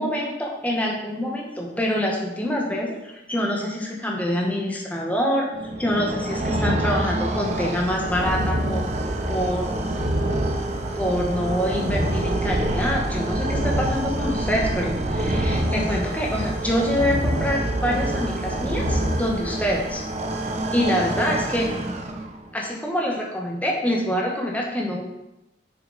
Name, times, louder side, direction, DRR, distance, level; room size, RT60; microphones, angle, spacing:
voice 1, 0.0-5.5 5.8-8.8 9.3-9.7 11.0-20.0 20.7-21.7 22.5-25.0, equal, 10° left, -2 dB, 1.3 m, -25 dB
sound 1, 5.5-22.5, right 1 dB, 35° right, 0.7 m, -28 dB
sound 2, 6.4-19.1, equal, 65° right, 1.4 m, -29 dB
7.2 x 6.6 x 4.1 m, 0.91 s
head